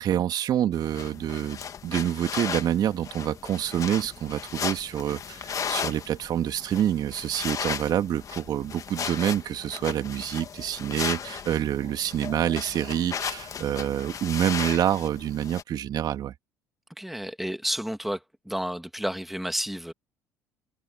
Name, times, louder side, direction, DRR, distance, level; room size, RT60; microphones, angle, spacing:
voice 1, 0.0-16.3, right 10 dB, 55° right, 2.3 m, -27 dB
sound 1, 0.7-15.6, left 7 dB, 45° left, 2.1 m, -36 dB
voice 2, 17.0-18.2 18.5-19.9, equal, ahead, 2.6 m, -31 dB
hypercardioid pair, 65°, 8 cm